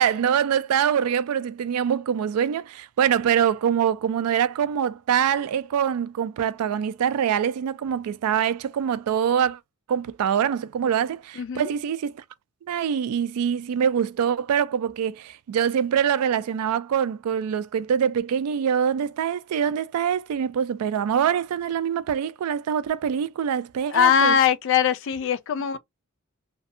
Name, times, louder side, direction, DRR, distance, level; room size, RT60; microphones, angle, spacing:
voice 1, 0.0-9.6 9.9-12.2 12.6-24.3, right 8 dB, 90° right, 0.3 m, -24 dB
voice 2, 11.4-11.7 23.9-25.8, left 8 dB, 60° left, 0.3 m, -21 dB
2.5 x 2.3 x 2.6 m
head